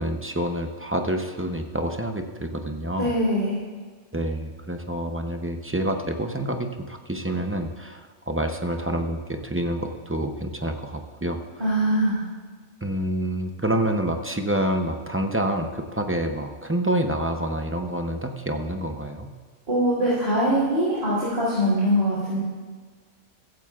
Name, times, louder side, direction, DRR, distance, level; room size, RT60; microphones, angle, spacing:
voice 1, 0.0-3.1 4.1-11.4 12.8-19.3, right 1 dB, 15° right, 4 dB, 0.5 m, -27 dB
voice 2, 3.0-3.6 11.6-12.2 19.7-22.4, equal, 85° right, -8 dB, 3.6 m, -22 dB
15.5 x 15.0 x 2.4 m, 1.5 s
omnidirectional pair, 1.3 m